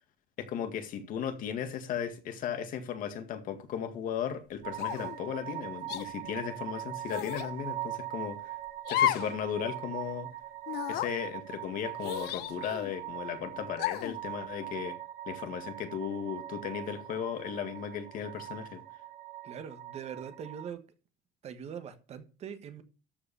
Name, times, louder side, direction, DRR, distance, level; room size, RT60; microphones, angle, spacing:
voice 1, 0.4-8.5 8.9-10.3 10.9-15.0 15.3-18.8, left 8 dB, 55° left, 1.9 m, -36 dB
sound 1, 4.6-20.7, right 14 dB, 60° right, 1.7 m, -42 dB
sound 2, 4.8-5.2 5.9-6.1 7.1-7.5 8.8-9.4 9.7-9.8 10.7-11.1 12.0-12.9 13.8-14.2, left 11 dB, 75° left, 0.8 m, -32 dB
voice 2, 19.4-20.8 21.4-22.8, right 7 dB, 40° right, 1.4 m, -42 dB
13.0 x 4.9 x 6.8 m
cardioid pair, 165°, 17 cm